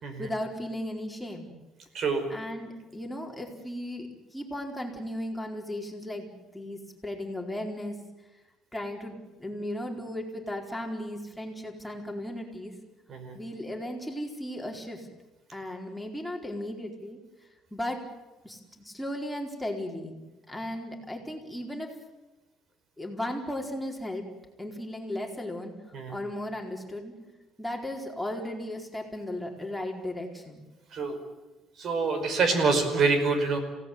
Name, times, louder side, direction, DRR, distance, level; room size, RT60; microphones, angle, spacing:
voice 1, 0.2-1.5 2.3-4.1 4.3-7.9 8.7-12.7 13.3-15.1 15.5-17.2 17.7-18.0 18.4-20.2 20.5-21.9 23.0-24.2 24.6-25.7 26.1-27.1 27.6-30.6, left 1 dB, 5° left, 0 dB, 4.4 m, -36 dB
voice 2, 31.8-33.6, right 4 dB, 55° right, 7 dB, 5.2 m, -26 dB
27.5 x 18.0 x 9.5 m, 1.1 s
cardioid pair, 115°, 0 cm